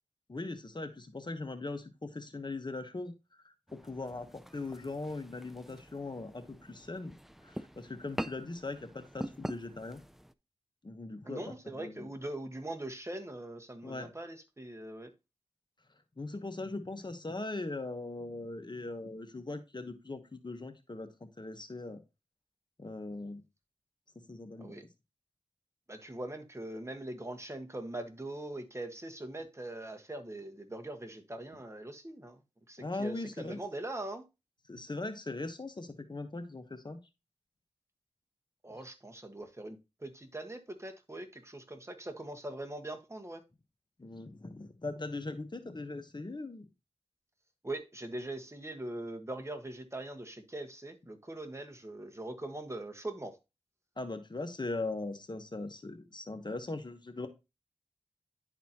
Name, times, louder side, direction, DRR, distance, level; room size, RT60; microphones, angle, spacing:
voice 1, 0.3-3.1 3.4-3.5 3.8-7.1 7.4-10.0 10.8-12.1 13.8-14.1 16.2-21.1 21.4-22.0 22.8-23.4 24.3-24.8 32.8-33.6 34.7-37.0 44.0-46.7 54.0-57.3, left 2 dB, 40° left, 1.1 m, -40 dB
sound 1, 3.7-10.3, equal, ahead, 0.5 m, -44 dB
voice 2, 11.2-15.1 24.6-24.8 25.9-32.4 32.7-34.2 38.6-43.4 47.6-53.4, right 1 dB, 25° right, 1.4 m, -42 dB
10.5 x 4.1 x 2.9 m
cardioid pair, 40°, 12 cm